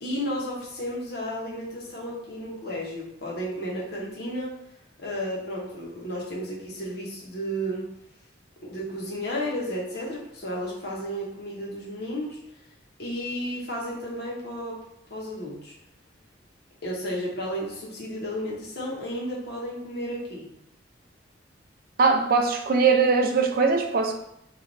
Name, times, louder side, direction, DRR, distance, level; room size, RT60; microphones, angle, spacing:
voice 1, 0.0-4.5 5.0-7.9 8.6-12.4 13.0-14.8 15.1-15.7 16.8-20.5, equal, 60° left, -3 dB, 1.0 m, -33 dB
voice 2, 22.0-24.1, right 4 dB, 50° right, 4 dB, 0.5 m, -21 dB
3.1 x 2.5 x 3.9 m, 0.80 s
head